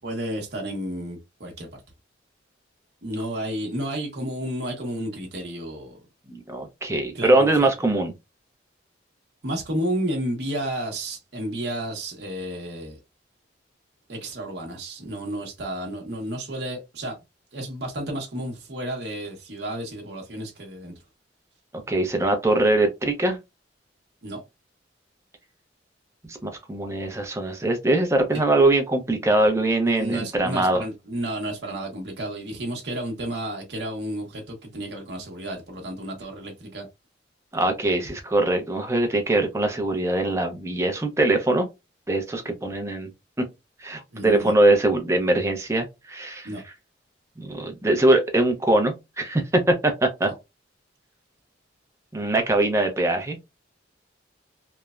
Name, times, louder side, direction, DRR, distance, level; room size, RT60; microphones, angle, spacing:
voice 1, 0.0-1.7 3.0-6.0 7.1-7.5 9.4-13.0 14.1-17.2 17.5-20.9 24.2-24.4 29.8-36.9 44.1-44.5 46.4-46.6 50.3-50.4, right 1 dB, 60° right, 0.8 m, -31 dB
voice 2, 6.3-8.1 21.9-23.4 26.2-26.4 26.7-30.8 37.5-41.7 42.1-43.1 43.4-43.5 43.8-46.5 47.4-50.3 52.1-53.4, right 2 dB, 15° right, 0.6 m, -22 dB
3.1 x 2.1 x 2.3 m
head